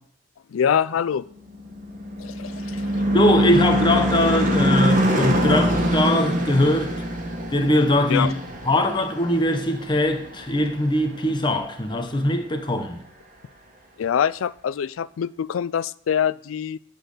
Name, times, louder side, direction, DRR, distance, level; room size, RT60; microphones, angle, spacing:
voice 1, 0.5-1.3 2.2-2.8 8.1-8.3 14.0-16.8, left 8 dB, 85° left, 0.4 m, -24 dB
Car passing by / Truck / Engine, 1.7-10.4, equal, 40° right, 1.6 m, -23 dB
voice 2, 3.1-6.9 7.5-8.3 8.6-13.0, left 1 dB, 25° left, 1.0 m, -21 dB
12.0 x 4.1 x 6.6 m
head